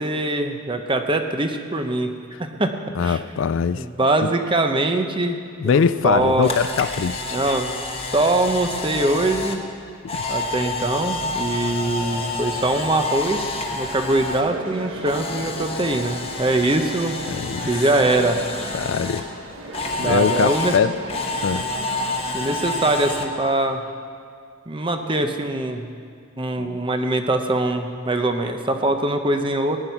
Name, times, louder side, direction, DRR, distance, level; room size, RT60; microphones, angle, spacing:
voice 1, 0.0-2.1 2.4-2.7 3.0-3.2 3.8-6.6 7.3-7.7 8.1-9.6 10.3-13.4 13.7-17.1 17.7-18.5 20.0-20.7 22.3-23.8 24.7-25.9 26.4-29.8, right 2 dB, 25° right, 6 dB, 0.8 m, -22 dB
voice 2, 2.9-3.9 4.2-4.3 5.6-7.6 10.0-10.4 17.3-17.8 18.7-19.2 20.0-21.0 21.4-21.7 26.6-26.8, left 6 dB, 65° left, 14 dB, 0.4 m, -23 dB
Camera, 6.1-14.4 14.7-19.2 19.7-23.3, left 2 dB, 30° left, 1.2 m, -29 dB
sound 1, 11.5-22.7, right 2 dB, 70° right, 1.5 m, -37 dB
16.5 x 9.7 x 5.8 m, 2.2 s
head